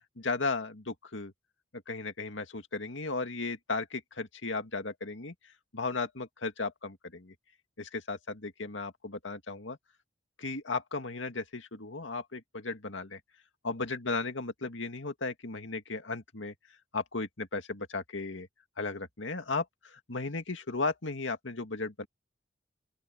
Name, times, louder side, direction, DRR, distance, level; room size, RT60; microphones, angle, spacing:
voice 1, 0.2-1.3 1.9-5.3 5.7-7.3 7.8-9.8 10.4-13.2 13.6-16.5 16.9-18.5 18.8-22.1, left 3 dB, 90° left, 2.1 m, -35 dB
open air
head